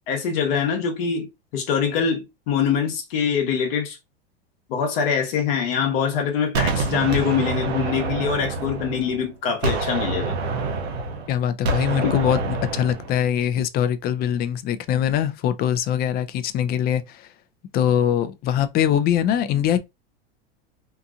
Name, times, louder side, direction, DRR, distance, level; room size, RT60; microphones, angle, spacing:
voice 1, 0.1-4.0 4.7-10.4 12.0-12.1, left 7 dB, 65° left, 1.0 m, -24 dB
Gunshot gunfire, 6.5-9.3 9.6-13.2, right 3 dB, 85° right, 0.7 m, -26 dB
voice 2, 11.3-17.3 17.7-19.8, left 9 dB, 30° left, 0.4 m, -22 dB
2.8 x 2.5 x 2.4 m
hypercardioid pair, 95°, 31 cm